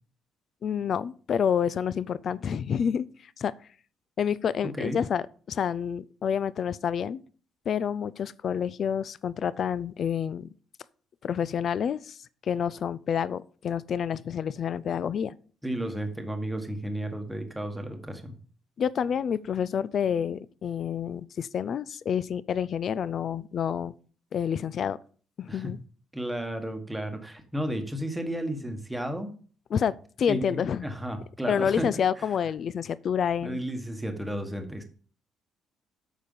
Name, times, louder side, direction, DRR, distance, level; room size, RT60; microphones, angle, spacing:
voice 1, 0.6-3.5 4.2-7.2 7.7-10.5 11.2-12.2 12.4-15.3 18.8-23.9 24.3-25.0 25.4-25.8 29.7-30.9 31.5-33.6, left 8 dB, 40° left, 0.4 m, -28 dB
voice 2, 4.6-5.0 15.6-18.3 25.5-25.7 26.1-29.3 30.3-31.9 32.2-32.3 33.4-34.8, right 1 dB, 5° right, 1.2 m, -33 dB
8.8 x 6.6 x 5.4 m
cardioid pair, 170°, 0 cm